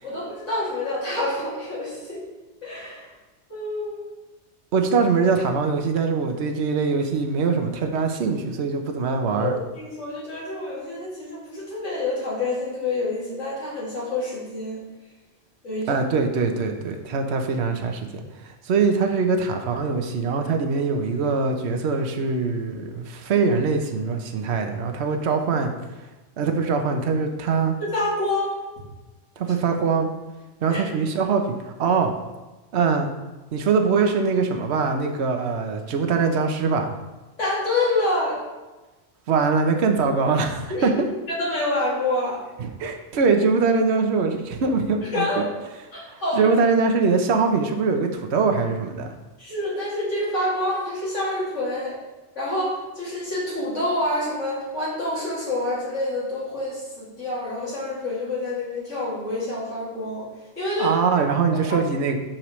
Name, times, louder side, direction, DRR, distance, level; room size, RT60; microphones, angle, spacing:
voice 1, 0.0-2.2 2.6-3.1 3.5-4.0 9.4-14.8 15.6-16.0 27.8-28.6 30.7-30.8 37.4-38.4 40.7-40.9 41.3-42.4 45.1-45.5 45.9-46.5 49.4-52.0 52.4-60.3 60.6-61.0 61.7-61.8, left 2 dB, 75° left, -8 dB, 3.0 m, -27 dB
voice 2, 4.7-9.6 15.9-18.2 18.6-25.7 26.4-27.8 29.4-30.1 30.6-32.1 32.7-33.1 33.5-36.9 39.3-40.9 42.6-45.5 46.1-49.1 60.8-62.2, right 4 dB, 65° right, 5 dB, 1.1 m, -22 dB
8.8 x 6.5 x 3.2 m, 1.2 s
omnidirectional pair, 1.2 m